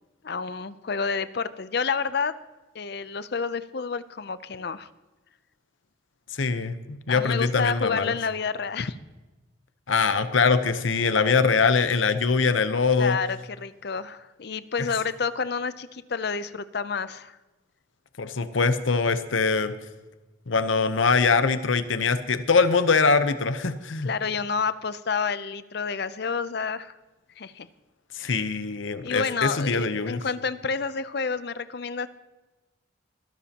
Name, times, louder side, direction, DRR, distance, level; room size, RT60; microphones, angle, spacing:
voice 1, 0.2-2.3 2.7-4.9 7.1-9.0 13.0-17.4 24.0-27.0 27.4-27.7 28.2-28.4 29.0-32.1, left 5 dB, 55° left, 14 dB, 0.6 m, -29 dB
voice 2, 6.3-8.1 9.9-13.2 18.2-19.7 20.5-24.1 28.1-30.2, left 4 dB, 80° left, 11 dB, 0.9 m, -23 dB
22.5 x 12.5 x 2.9 m, 1.1 s
head